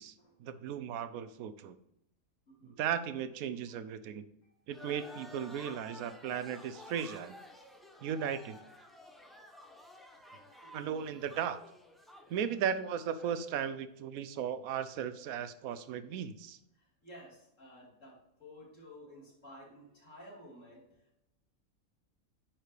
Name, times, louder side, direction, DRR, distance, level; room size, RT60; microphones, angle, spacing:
voice 1, 0.4-1.7 2.6-4.2 4.7-7.4 8.0-8.6 10.7-11.6 12.3-16.6, right 8 dB, 80° right, 12 dB, 1.0 m, -36 dB
sound 1, 4.7-13.5, left 1 dB, ahead, 0.5 m, -53 dB
voice 2, 10.6-11.0 12.3-12.6 17.0-20.8, equal, 60° left, -4 dB, 3.0 m, -53 dB
9.6 x 4.4 x 3.3 m, 0.82 s
omnidirectional pair, 1.5 m